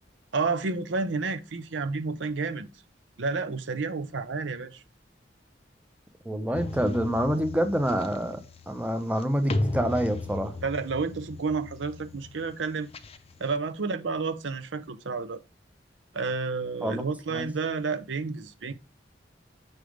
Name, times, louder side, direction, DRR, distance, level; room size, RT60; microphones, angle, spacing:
voice 1, 0.3-2.7 3.2-4.8 10.6-12.9 13.4-15.4 16.1-18.7, right 4 dB, 85° right, 0.7 m, -30 dB
voice 2, 6.2-8.4 8.7-10.6 16.8-17.0 17.3-17.5, equal, 10° right, 0.7 m, -27 dB
sound 1, 6.5-13.5, left 2 dB, 35° left, 0.5 m, -36 dB
6.2 x 3.3 x 5.1 m
head